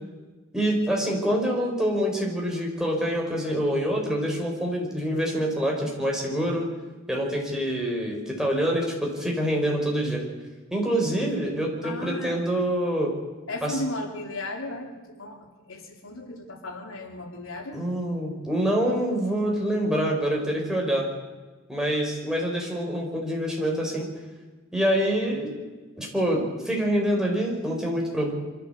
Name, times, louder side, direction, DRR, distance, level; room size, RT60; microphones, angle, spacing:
voice 1, 0.5-6.7 7.1-10.2 10.7-13.1 13.6-13.8 17.7-21.1 21.7-24.1 24.7-25.5 26.0-28.3, equal, 5° right, -1 dB, 4.7 m, -26 dB
voice 2, 11.8-12.4 13.5-15.4 15.7-17.8, left 1 dB, 90° left, 2 dB, 3.3 m, -35 dB
25.0 x 14.0 x 7.9 m, 1.3 s
head